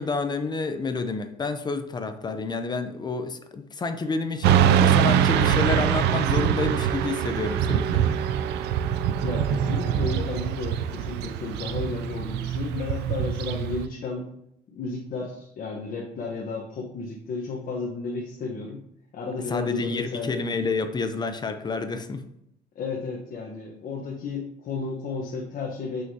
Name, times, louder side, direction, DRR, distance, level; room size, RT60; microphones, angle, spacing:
voice 1, 0.0-8.1 19.5-22.2, left 3 dB, 25° left, 9 dB, 0.6 m, -29 dB
Motorcycle / Traffic noise roadway noise, 4.4-13.8, right 9 dB, 80° right, 0.4 m, -23 dB
voice 2, 9.2-14.3 14.7-18.8 19.1-20.4 22.7-26.0, left 4 dB, 55° left, -2 dB, 1.1 m, -33 dB
6.1 x 5.6 x 2.8 m, 0.76 s
cardioid pair, 110°, 17 cm